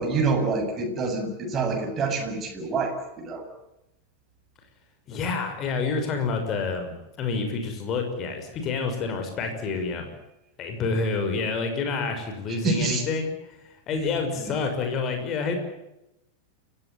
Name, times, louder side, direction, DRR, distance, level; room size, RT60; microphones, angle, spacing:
voice 1, 0.0-3.4 12.6-13.0 13.9-14.1 14.4-14.6, right 4 dB, 25° right, 2 dB, 7.8 m, -27 dB
voice 2, 5.1-10.1 10.6-13.6 13.9-15.5, left 4 dB, 35° left, 5 dB, 6.0 m, -28 dB
29.5 x 16.5 x 9.4 m, 0.88 s
figure-of-eight pair, 90°, 0 cm